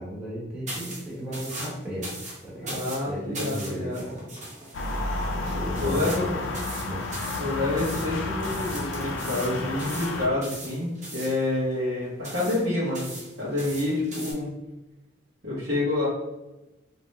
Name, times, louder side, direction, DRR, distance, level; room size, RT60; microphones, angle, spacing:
voice 1, 0.0-2.2 2.4-4.2 5.3-6.5 6.9-7.1 7.5-7.7, equal, 5° right, -8 dB, 1.0 m, -35 dB
sound 1, 0.7-14.3, right 1 dB, 40° right, 0.8 m, -40 dB
voice 2, 2.6-4.0 5.8-6.3 7.4-13.1 13.4-14.5 15.4-16.1, left 2 dB, 85° right, -11 dB, 1.2 m, -28 dB
sound 2, 4.7-10.3, left 2 dB, 80° left, 0.4 m, -31 dB
3.1 x 2.9 x 2.7 m, 1.0 s
head